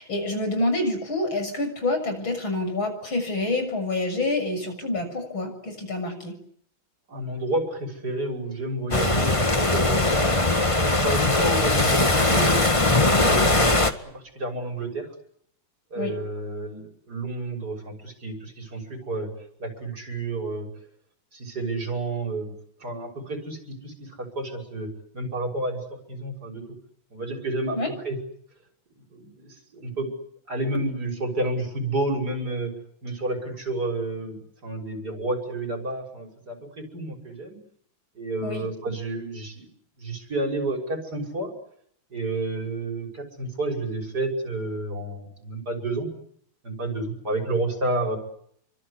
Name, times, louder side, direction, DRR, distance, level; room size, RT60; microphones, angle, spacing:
voice 1, 0.0-6.3 16.0-16.1 27.7-27.9 38.4-38.7, left 2 dB, 85° left, 6 dB, 7.7 m, -27 dB
voice 2, 7.1-9.4 9.7-10.1 10.9-12.8 13.1-13.8 14.1-15.1 15.9-19.3 19.6-20.7 21.3-22.5 22.8-24.9 25.1-25.8 26.1-26.6 27.1-28.2 29.1-30.1 30.5-32.7 33.0-37.6 38.1-39.7 40.0-41.5 42.1-46.1 46.6-48.2, right 2 dB, 50° right, 3 dB, 6.6 m, -30 dB
sound 1, 8.9-13.9, left 2 dB, 15° left, 1.7 m, -20 dB
28.5 x 24.5 x 8.3 m, 0.69 s
omnidirectional pair, 2.2 m